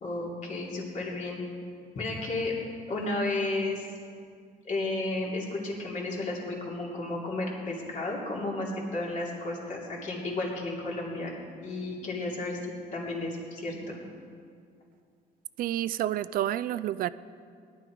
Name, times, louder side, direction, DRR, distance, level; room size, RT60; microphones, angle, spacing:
voice 1, 0.0-1.4 1.9-2.5 2.9-3.9 4.6-14.0, left 2 dB, 45° left, -3 dB, 2.9 m, -33 dB
voice 2, 15.6-17.1, right 12 dB, 60° right, 16 dB, 0.4 m, -29 dB
18.0 x 11.5 x 4.6 m, 2.2 s
cardioid pair, 155°, 17 cm